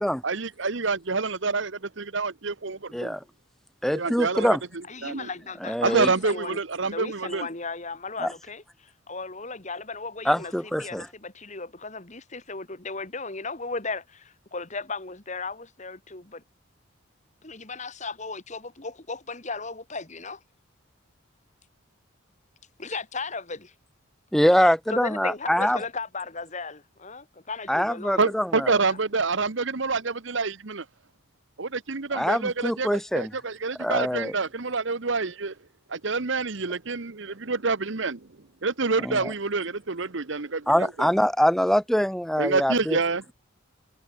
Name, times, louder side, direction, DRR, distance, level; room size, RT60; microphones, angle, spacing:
voice 1, 0.2-2.8 3.9-5.3 5.8-7.5 28.2-30.8 31.6-32.9 33.1-35.5 35.9-38.3 38.6-41.1 42.4-43.3, right 4 dB, 60° right, 1.1 m, -27 dB
voice 2, 3.8-4.6 5.6-6.1 8.2-8.3 10.2-11.1 24.3-25.8 27.7-28.8 32.1-33.3 33.8-34.3 39.0-39.3 40.7-43.0, equal, ahead, 0.5 m, -24 dB
voice 3, 4.9-6.6 6.9-16.4 17.4-20.4 22.8-23.7 24.6-28.2, left 3 dB, 35° left, 2.1 m, -36 dB
head